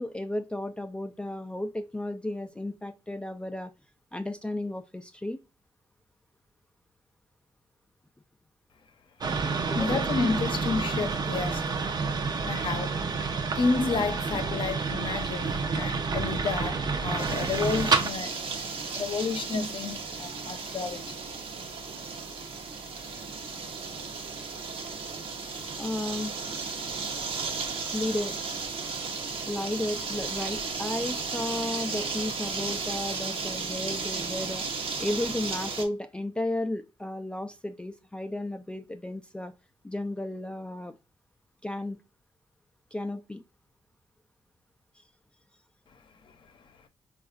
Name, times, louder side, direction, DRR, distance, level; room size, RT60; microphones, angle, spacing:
voice 1, 0.0-3.7 4.1-5.4 9.7-10.0 25.8-26.3 27.9-28.4 29.4-34.7 35.0-39.5 39.8-40.9 41.6-42.0 42.9-43.4, left 1 dB, 10° left, 0.3 m, -33 dB
sound 1, 9.2-18.1, right 4 dB, 45° right, 0.5 m, -29 dB
voice 2, 9.7-11.7 12.4-13.0 13.6-18.4 18.9-21.1 46.2-46.5, left 4 dB, 55° left, 0.7 m, -30 dB
sound 2, 17.2-35.8, right 4 dB, 70° right, 0.8 m, -35 dB
4.0 x 2.4 x 2.4 m
cardioid pair, 95°, 10 cm